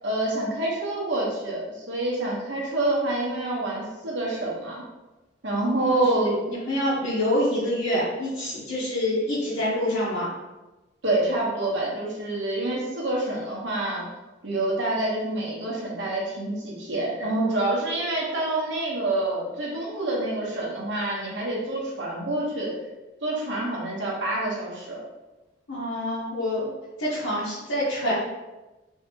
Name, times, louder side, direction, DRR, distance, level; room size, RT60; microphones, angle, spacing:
voice 1, 0.0-4.8 5.4-6.4 11.0-14.0 14.4-22.7 23.2-25.0, right 2 dB, 65° right, -4 dB, 0.9 m, -27 dB
voice 2, 6.5-10.3 25.7-26.7 27.0-28.1, left 1 dB, 90° left, -9 dB, 0.9 m, -26 dB
3.2 x 2.7 x 2.7 m, 1.1 s
head